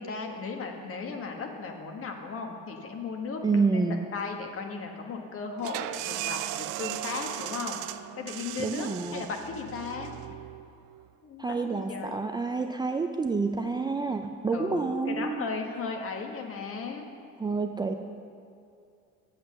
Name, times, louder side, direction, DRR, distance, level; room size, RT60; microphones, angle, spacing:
voice 1, 0.0-3.9 4.1-7.8 8.2-10.1 11.2-12.2 14.5-17.1, left 4 dB, 45° left, 3 dB, 1.4 m, -36 dB
voice 2, 3.4-4.0 8.6-9.2 11.4-15.5 17.4-17.9, right 4 dB, 15° right, 5 dB, 0.4 m, -28 dB
sound 1, 5.6-11.0, right 14 dB, 75° right, 0.5 m, -37 dB
8.0 x 8.0 x 6.5 m, 2.5 s
cardioid pair, 110°, 31 cm